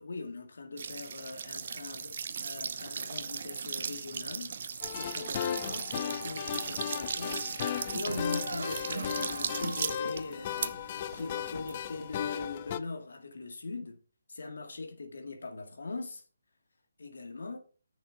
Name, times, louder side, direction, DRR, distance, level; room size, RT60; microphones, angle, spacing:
voice 1, 0.0-14.0 14.3-16.2 17.0-17.6, left 3 dB, 75° left, 2.0 m, -41 dB
sound 1, 0.8-12.4, right 6 dB, 55° right, 0.8 m, -38 dB
sound 2, 4.8-12.8, left 9 dB, 35° left, 0.6 m, -36 dB
sound 3, 6.6-6.8 7.1-10.3 10.8-10.9, right 2 dB, 85° right, 1.0 m, -43 dB
9.9 x 6.5 x 3.8 m
figure-of-eight pair, 155°, 0 cm